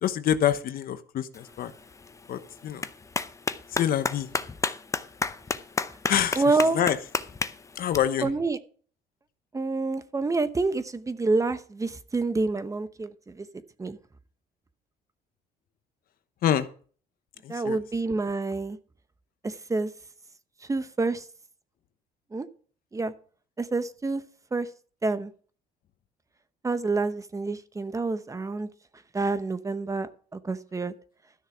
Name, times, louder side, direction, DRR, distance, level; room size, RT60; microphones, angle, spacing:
voice 1, 0.0-1.7 2.3-2.9 3.7-4.3 6.1-6.4 6.7-7.0 7.8-8.3 16.4-16.7 17.4-17.8, left 10 dB, 60° left, 11 dB, 1.0 m, -26 dB
Clapping, 1.3-8.0, left 4 dB, 20° left, 0.7 m, -33 dB
voice 2, 6.3-6.8 8.2-8.6 9.5-13.5 13.8-14.0 17.5-18.8 19.4-19.9 20.7-21.2 22.3-22.5 22.9-23.1 23.6-24.2 24.5-24.7 25.0-25.3 26.6-28.7 29.1-30.9, right 3 dB, 20° right, 12 dB, 0.9 m, -27 dB
13.0 x 6.6 x 6.0 m, 0.43 s
cardioid pair, 110°, 17 cm